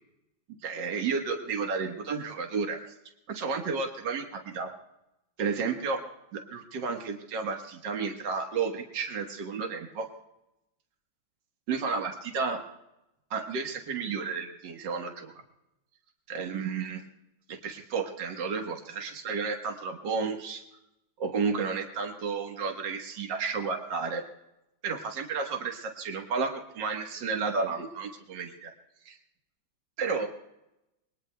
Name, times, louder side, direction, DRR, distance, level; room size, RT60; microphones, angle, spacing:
voice 1, 0.6-2.8 3.3-4.7 5.4-6.0 6.3-10.1 11.7-12.6 13.3-15.3 16.3-17.0 17.5-20.6 21.2-24.2 24.8-28.7 29.1-29.2 30.0-30.3, right 5 dB, 65° right, 3 dB, 2.0 m, -32 dB
27.5 x 22.0 x 2.3 m, 0.90 s
omnidirectional pair, 2.1 m